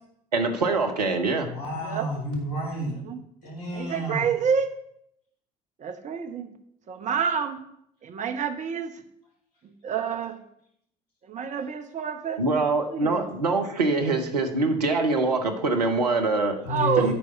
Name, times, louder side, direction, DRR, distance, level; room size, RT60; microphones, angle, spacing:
voice 1, 0.3-1.5 12.4-16.6 17.0-17.1, right 3 dB, 80° right, 4 dB, 0.9 m, -24 dB
voice 2, 1.4-3.0 3.4-4.3 16.6-17.1, left 1 dB, 70° left, -1 dB, 2.2 m, -30 dB
voice 3, 3.7-4.7 5.8-6.5 6.9-7.6 8.0-8.9 9.8-10.4 11.2-12.6 12.9-13.2 16.7-17.1, right 7 dB, 35° right, 6 dB, 1.1 m, -28 dB
11.5 x 4.7 x 5.6 m, 0.73 s
figure-of-eight pair, 55°, 20 cm